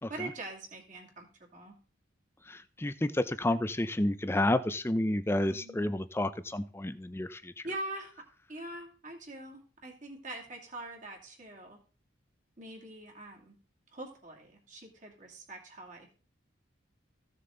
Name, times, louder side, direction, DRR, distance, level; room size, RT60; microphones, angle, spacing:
voice 1, 0.1-1.3 1.5-1.7 5.4-5.9 7.6-11.8 12.6-13.5 13.9-16.1, right 2 dB, 40° right, 1 dB, 2.5 m, -43 dB
voice 2, 2.5-7.6, left 1 dB, 10° left, 13 dB, 0.5 m, -30 dB
15.0 x 6.8 x 3.9 m, 0.38 s
head